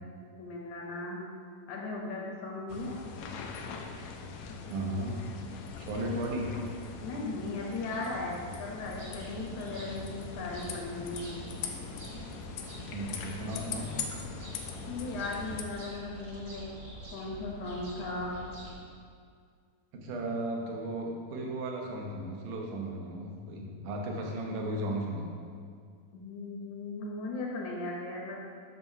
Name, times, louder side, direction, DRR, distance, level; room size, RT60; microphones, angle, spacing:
voice 1, 0.4-1.3 1.7-3.0 4.5-5.1 7.0-11.4 14.9-16.8 17.1-18.4 26.1-28.4, left 2 dB, 70° left, -2 dB, 1.9 m, -37 dB
sound 1, 2.7-15.6, left 5 dB, 90° left, 1.6 m, -41 dB
voice 2, 4.7-5.2 5.8-6.6 12.9-13.9 19.9-25.3, right 1 dB, 75° right, 0 dB, 2.4 m, -35 dB
sound 2, 8.8-18.7, right 1 dB, 45° right, 1.5 m, -46 dB
9.4 x 6.3 x 2.7 m, 2.2 s
omnidirectional pair, 3.9 m